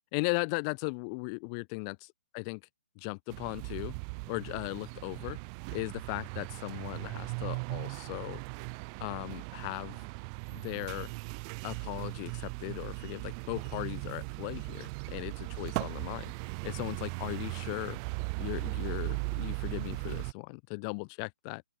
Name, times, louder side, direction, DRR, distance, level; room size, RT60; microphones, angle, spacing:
voice 1, 0.1-2.6 3.0-3.9 4.3-5.4 5.7-8.4 9.0-10.1 10.5-11.1 11.6-16.3 16.6-18.0 18.4-21.6, left 36 dB, 25° left, 0.5 m, -37 dB
sound 1, 3.3-20.3, right 37 dB, 25° right, 1.8 m, -38 dB
open air
hypercardioid pair, 150°, 7 cm